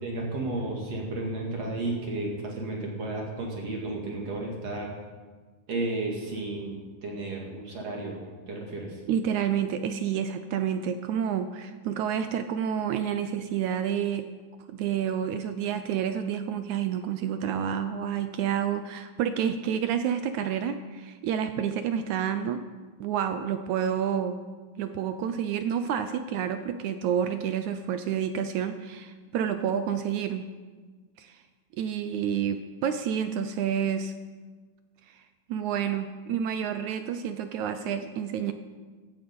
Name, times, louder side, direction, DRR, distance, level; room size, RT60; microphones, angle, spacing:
voice 1, 0.0-4.9 5.7-8.2 8.5-9.0, right 2 dB, 55° right, -1 dB, 3.2 m, -33 dB
voice 2, 9.1-14.3 14.7-22.6 23.0-24.4 24.8-30.4 31.2-31.4 31.8-34.1 35.1-35.2 35.5-38.5, right 8 dB, 75° right, 9 dB, 2.0 m, -29 dB
16.5 x 12.0 x 5.4 m, 1.4 s
omnidirectional pair, 3.6 m